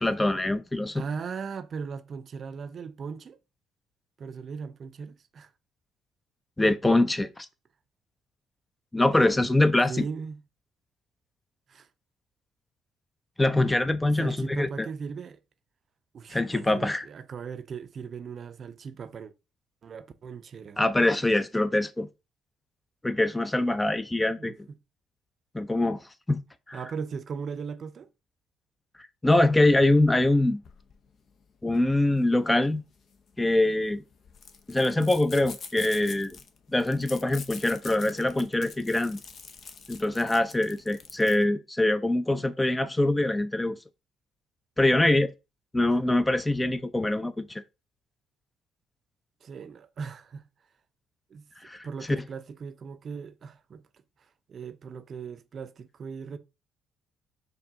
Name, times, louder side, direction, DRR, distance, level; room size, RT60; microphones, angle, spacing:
voice 1, 0.0-1.0 6.6-7.5 8.9-10.0 13.4-14.9 16.3-17.1 20.8-22.1 23.0-24.5 25.5-26.0 26.3-26.4 26.7-26.8 29.2-30.6 31.6-32.8 33.4-34.0 34.7-36.4 36.7-39.2 39.9-43.8 44.8-45.3 45.7-47.6 51.6-52.2, left 2 dB, 15° left, 0.5 m, -24 dB
voice 2, 0.9-3.4 4.2-5.5 9.4-9.5 9.9-10.4 11.7-11.9 14.1-15.4 16.1-19.3 19.8-20.8 24.4-24.6 26.7-28.1 45.9-46.0 49.4-50.5 51.3-51.5 51.8-53.8 54.5-56.4, right 6 dB, 50° right, 0.5 m, -38 dB
sound 1, 30.6-41.5, left 5 dB, 55° left, 0.7 m, -46 dB
4.5 x 2.7 x 3.7 m
hypercardioid pair, 55°, 0 cm